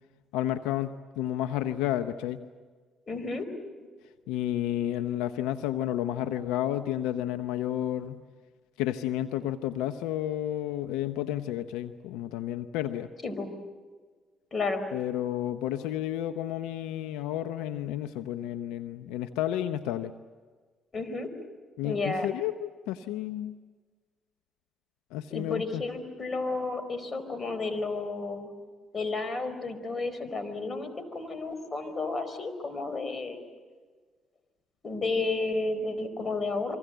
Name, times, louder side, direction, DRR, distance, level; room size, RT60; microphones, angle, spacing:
voice 1, 0.3-2.4 4.3-8.2 8.8-13.1 14.9-20.1 21.8-23.5 25.1-25.8, left 12 dB, 90° left, 10 dB, 0.7 m, -31 dB
voice 2, 3.1-3.5 13.2-13.5 14.5-14.8 20.9-21.3 21.8-22.3 25.3-28.5 28.9-33.5 34.8-36.8, left 3 dB, 40° left, 11 dB, 4.5 m, -32 dB
27.5 x 24.5 x 7.9 m, 1.5 s
supercardioid pair, 70°, 0 cm